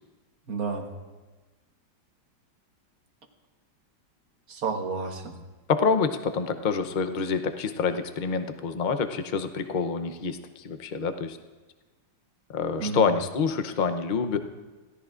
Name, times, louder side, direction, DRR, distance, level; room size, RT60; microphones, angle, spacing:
voice 1, 0.5-0.9 4.5-5.4 12.8-13.1, right 5 dB, 55° right, 3 dB, 1.7 m, -30 dB
voice 2, 5.7-11.4 12.5-14.4, left 5 dB, 75° left, 8 dB, 0.4 m, -27 dB
26.0 x 17.0 x 2.5 m, 1.3 s
omnidirectional pair, 2.0 m